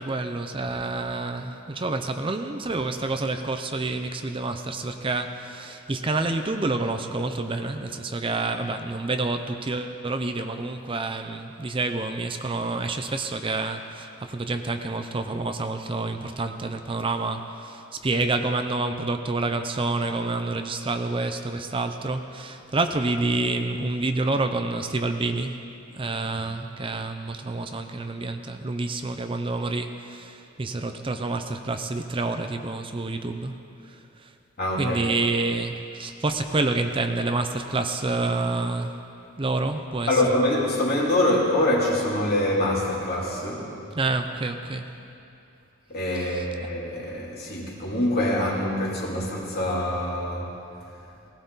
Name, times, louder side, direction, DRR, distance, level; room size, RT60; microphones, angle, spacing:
voice 1, 0.0-25.6 25.9-33.5 33.8-34.3 34.8-39.0 39.4-40.1 44.0-44.9 46.1-46.4, right 3 dB, 25° right, 6 dB, 0.6 m, -28 dB
voice 2, 34.6-35.0 40.1-43.8 45.9-50.6, left 1 dB, 50° left, -3 dB, 2.9 m, -25 dB
18.5 x 18.0 x 4.0 m, 2.7 s
head